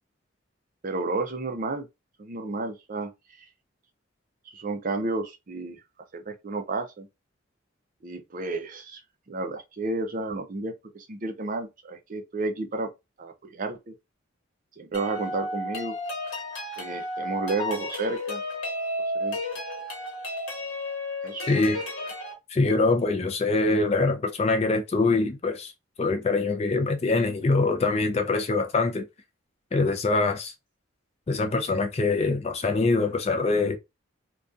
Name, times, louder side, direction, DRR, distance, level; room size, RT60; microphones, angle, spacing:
voice 1, 0.8-1.9 2.2-3.1 3.4-3.5 4.5-5.8 6.1-7.1 8.0-9.0 9.3-12.9 13.2-13.9 14.8-16.0 16.8-18.4 19.2-19.4 21.2-21.5, right 3 dB, 40° right, 0.4 m, -31 dB
sound 1, 14.9-22.3, left 1 dB, 80° left, 1.0 m, -33 dB
voice 2, 21.5-21.8 22.5-25.7 26.0-29.0 29.7-30.5 31.3-33.8, left 3 dB, 30° left, 0.3 m, -24 dB
2.6 x 2.2 x 2.4 m
head